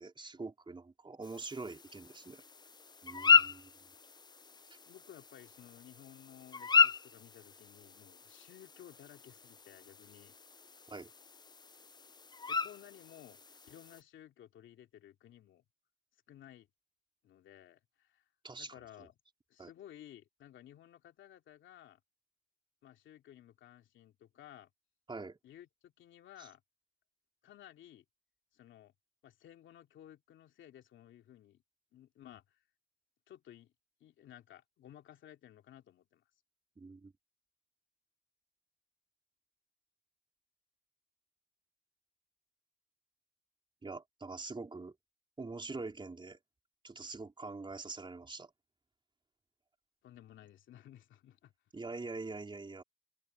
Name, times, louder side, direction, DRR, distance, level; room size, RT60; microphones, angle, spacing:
voice 1, 0.0-2.4 3.0-3.7 10.9-11.1 18.4-18.7 19.6-19.7 25.1-25.4 26.4-26.5 36.8-37.1 43.8-44.9 45.4-46.4 46.8-48.5 51.7-52.8, right 3 dB, 25° right, 4.1 m, -44 dB
sound 1, 1.2-14.0, left 5 dB, 20° left, 0.5 m, -34 dB
voice 2, 4.8-10.3 12.5-13.4 13.7-15.6 16.3-16.7 17.2-18.2 18.6-19.1 19.5-22.0 22.8-24.7 25.4-26.6 27.4-28.0 28.5-28.9 29.2-31.6 31.9-32.6 33.3-33.7 34.0-36.2 50.0-51.5, left 11 dB, 75° left, 2.6 m, -56 dB
open air
cardioid pair, 90°, 20 cm